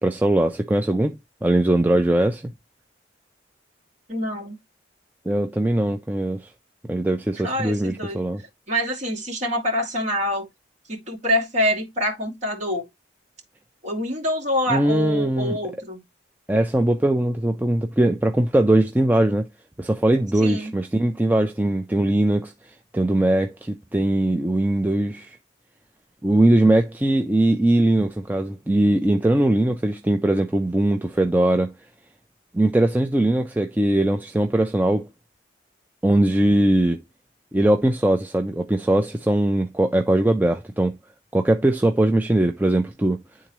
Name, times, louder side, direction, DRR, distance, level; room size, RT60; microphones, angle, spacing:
voice 1, 0.0-2.5 5.3-6.5 6.9-8.4 14.7-15.6 16.5-19.5 19.8-22.5 22.9-25.4 26.2-31.7 32.5-35.1 36.0-37.0 37.5-41.0 41.3-43.2, right 1 dB, 10° right, 0.4 m, -20 dB
voice 2, 4.1-4.6 7.4-10.5 10.9-12.9 13.8-16.0 20.4-20.7, equal, 40° right, 2.1 m, -26 dB
10.0 x 3.7 x 3.0 m
head